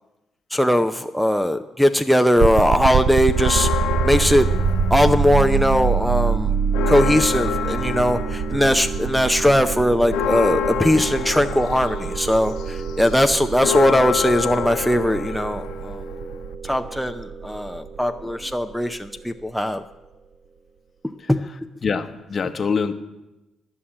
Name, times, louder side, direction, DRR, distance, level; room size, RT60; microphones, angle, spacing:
voice 1, 0.5-3.7 4.0-4.5 4.9-6.5 6.9-16.0 16.6-19.8 21.3-21.4, equal, ahead, 7 dB, 0.5 m, -20 dB
sound 1, 2.4-19.3, right 5 dB, 50° right, 0.6 m, -25 dB
Church bell, 3.3-5.7 6.1-6.2 6.5-16.5, left 11 dB, 90° left, 0.4 m, -29 dB
voice 2, 21.8-22.9, left 5 dB, 45° left, 10 dB, 0.9 m, -24 dB
11.5 x 5.7 x 8.7 m, 1.0 s
cardioid pair, 90°, 0 cm